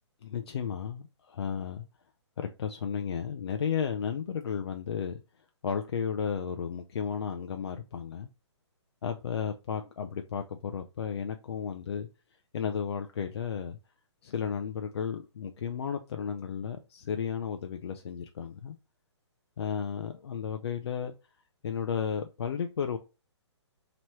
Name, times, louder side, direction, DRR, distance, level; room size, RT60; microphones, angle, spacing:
voice 1, 0.2-1.8 2.4-5.2 5.6-8.3 9.0-12.1 12.5-13.8 14.2-18.8 19.6-21.1 21.6-23.0, left 7 dB, 60° left, 0.5 m, -33 dB
3.0 x 2.9 x 4.6 m
hypercardioid pair, 175°, 15 cm